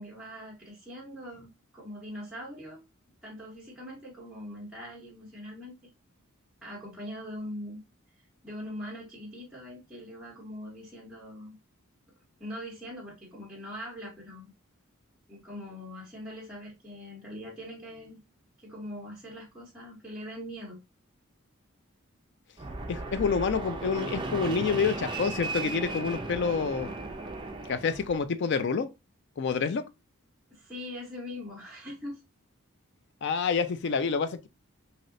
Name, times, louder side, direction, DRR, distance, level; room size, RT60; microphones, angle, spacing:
voice 1, 0.0-2.8 3.2-5.8 6.6-7.8 8.4-11.6 12.4-14.5 15.3-18.2 18.6-20.8 30.5-32.2, left 1 dB, 5° right, 0.8 m, -42 dB
Fixed-wing aircraft airplane, 22.6-28.2, right 3 dB, 20° right, 0.4 m, -36 dB
voice 2, 22.9-26.9 27.7-28.9 29.4-29.8 33.2-34.5, left 5 dB, 50° left, 0.4 m, -28 dB
3.1 x 2.8 x 2.5 m
head